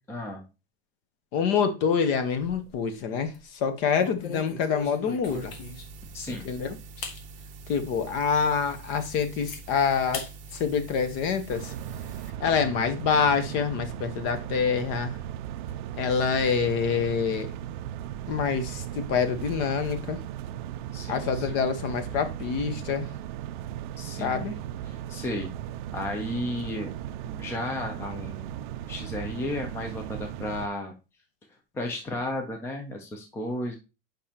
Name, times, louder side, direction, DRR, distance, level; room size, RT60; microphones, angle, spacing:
voice 1, 0.1-0.4 6.1-6.5 20.9-21.6 24.0-24.5 24.9-25.5 25.9-26.9 27.2-28.6 28.9-30.9 31.7-33.8, left 1 dB, 10° left, 0.5 m, -33 dB
voice 2, 1.3-3.3 3.6-5.5 6.3-6.8 7.7-10.2 10.5-11.7 12.4-15.1 16.0-17.5 18.3-20.2 21.1-23.1 24.2-24.6, left 6 dB, 40° left, 0.9 m, -26 dB
sound 1, 2.1-2.8 3.2-3.4 4.0-6.0 6.5-6.6 7.0-7.2 7.7-7.8 8.3-8.4 8.8-9.6 10.1-10.3 10.7-11.6, left 4 dB, 75° left, 1.7 m, -40 dB
sound 2, 5.2-12.3, right 4 dB, 25° right, 0.8 m, -45 dB
sound 3, 11.5-30.7, right 11 dB, 60° right, 0.4 m, -37 dB
7.0 x 5.3 x 2.9 m
supercardioid pair, 165°, 29 cm